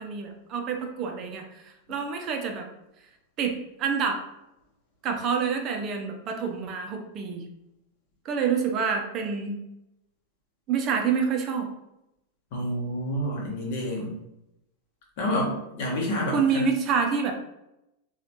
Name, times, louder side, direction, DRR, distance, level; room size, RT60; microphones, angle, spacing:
voice 1, 0.0-1.6 1.9-2.7 3.4-4.2 5.0-7.5 8.2-9.6 10.7-11.7 16.3-17.3, right 6 dB, 35° right, 2 dB, 0.5 m, -27 dB
voice 2, 12.5-14.2 15.2-16.6, equal, 50° left, -2 dB, 1.1 m, -29 dB
4.1 x 2.4 x 2.8 m, 0.88 s
figure-of-eight pair, 90°, 0 cm